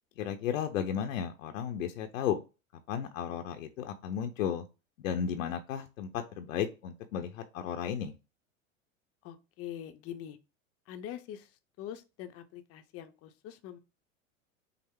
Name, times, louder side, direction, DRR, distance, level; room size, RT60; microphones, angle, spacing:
voice 1, 0.2-2.4 2.9-4.7 5.0-8.1, left 8 dB, 75° left, 0.7 m, -34 dB
voice 2, 9.2-10.4 10.9-11.5 11.8-13.8, left 10 dB, 35° left, 0.6 m, -43 dB
5.6 x 2.0 x 3.6 m
hypercardioid pair, 100°, 40 cm